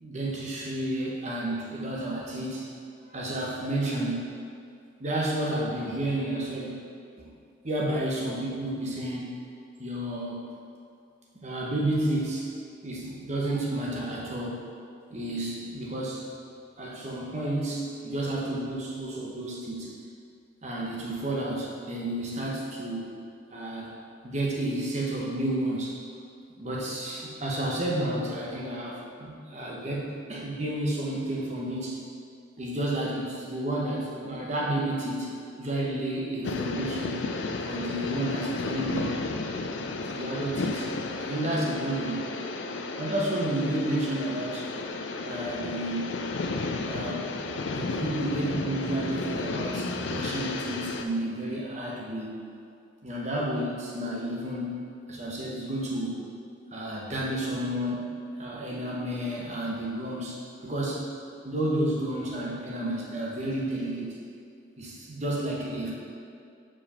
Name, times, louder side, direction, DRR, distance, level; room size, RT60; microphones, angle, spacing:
voice 1, 0.0-2.7 3.1-4.4 5.0-6.8 7.2-7.3 7.6-9.3 9.8-10.5 11.3-12.5 12.8-14.7 15.1-16.3 16.8-19.9 20.6-23.1 23.5-23.9 24.2-26.0 26.6-32.0 32.6-37.2 37.6-39.2 39.8-40.9 41.2-42.2 43.0-44.7 45.2-46.1 46.9-52.4 53.0-56.2 56.7-58.1 58.4-61.0 61.4-64.1 64.8-65.9, right 1 dB, 35° right, -3 dB, 0.9 m, -31 dB
sound 1, 36.4-51.1, left 3 dB, 70° left, 0.4 m, -33 dB
sound 2, 47.6-51.2, equal, 50° left, 1.2 m, -40 dB
4.9 x 4.8 x 5.6 m, 2.3 s
head